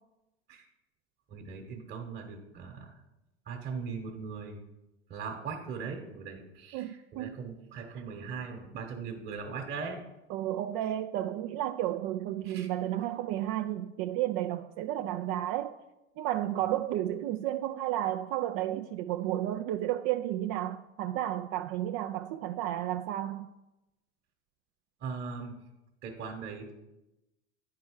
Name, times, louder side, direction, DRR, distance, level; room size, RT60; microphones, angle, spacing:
voice 1, 1.3-3.0 3.4-4.6 5.1-10.0 10.8-11.0 12.4-12.7 25.0-25.7 26.0-26.7, right 5 dB, 35° right, 1.2 m, -40 dB
voice 2, 6.7-7.4 10.3-15.7 16.2-23.5, right 13 dB, 50° right, 0.4 m, -32 dB
9.4 x 4.7 x 4.7 m
hypercardioid pair, 95°, 33 cm